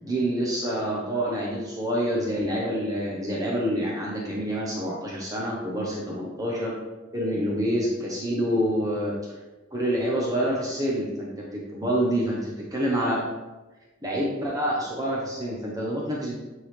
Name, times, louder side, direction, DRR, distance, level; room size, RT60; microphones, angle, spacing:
voice 1, 0.0-6.7 7.1-9.1 9.7-13.2 14.0-16.3, equal, 20° right, -4 dB, 0.9 m, -27 dB
9.1 x 3.8 x 3.3 m, 1.1 s
head